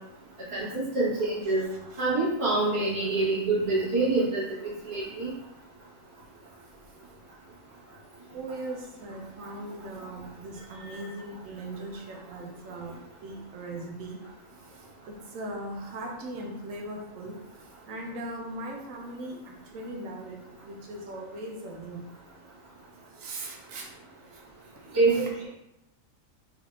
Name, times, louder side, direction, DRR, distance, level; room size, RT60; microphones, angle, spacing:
voice 1, 0.5-1.6 2.0-4.4 4.8-5.3 10.8-10.9 24.9-25.5, right 3 dB, 25° right, -11 dB, 1.2 m, -26 dB
voice 2, 1.5-2.0 8.3-12.9 13.2-14.2 14.7-17.4 17.9-22.0 23.2-24.0 24.3-24.4 24.9-25.3, right 1 dB, 75° right, 1 dB, 1.0 m, -39 dB
3.5 x 3.5 x 2.4 m, 0.89 s
omnidirectional pair, 1.4 m